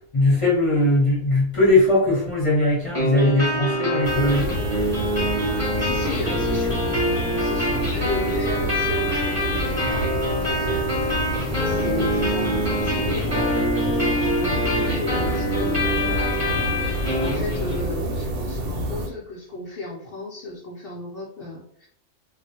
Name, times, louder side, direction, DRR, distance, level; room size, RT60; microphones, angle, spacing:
voice 1, 0.1-4.6, left 1 dB, 30° left, -7 dB, 0.6 m, -20 dB
sound 1, 2.9-17.9, equal, 15° right, 0.8 m, -25 dB
sound 2, 4.0-19.1, equal, 85° right, 1.0 m, -28 dB
voice 2, 5.3-11.3 11.6-13.9 14.2-21.9, left 2 dB, 75° left, -3 dB, 0.5 m, -35 dB
2.4 x 2.0 x 2.7 m, 0.67 s
omnidirectional pair, 1.5 m